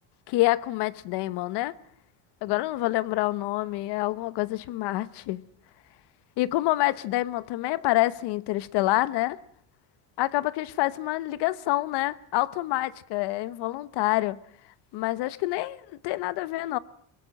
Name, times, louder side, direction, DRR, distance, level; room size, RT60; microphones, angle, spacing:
voice 1, 0.3-1.7 2.4-5.4 6.4-9.4 10.2-14.4 14.9-16.8, left 17 dB, 75° left, 1.1 m, -27 dB
22.5 x 21.0 x 7.7 m
cardioid pair, 155°, 41 cm